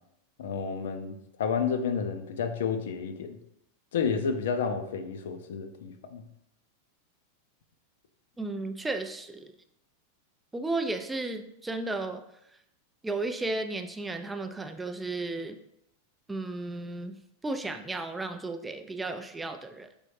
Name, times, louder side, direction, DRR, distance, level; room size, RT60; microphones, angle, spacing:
voice 1, 0.4-3.4 3.9-6.2, left 6 dB, 60° left, 8 dB, 0.4 m, -31 dB
voice 2, 8.4-9.5 10.5-12.2 13.0-15.6 16.3-19.9, right 2 dB, 10° right, 7 dB, 0.3 m, -34 dB
4.0 x 3.5 x 3.2 m, 0.78 s
figure-of-eight pair, 90°, 0 cm